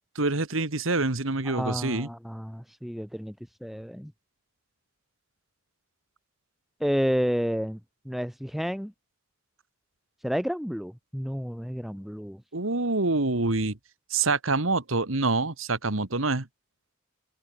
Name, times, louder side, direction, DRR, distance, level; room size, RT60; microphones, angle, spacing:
voice 1, 0.2-2.1 12.5-13.8 14.1-16.5, right 3 dB, 75° right, 1.9 m, -26 dB
voice 2, 1.5-3.3 3.6-4.1 6.8-7.8 8.1-8.9 10.2-12.4, equal, ahead, 1.7 m, -30 dB
head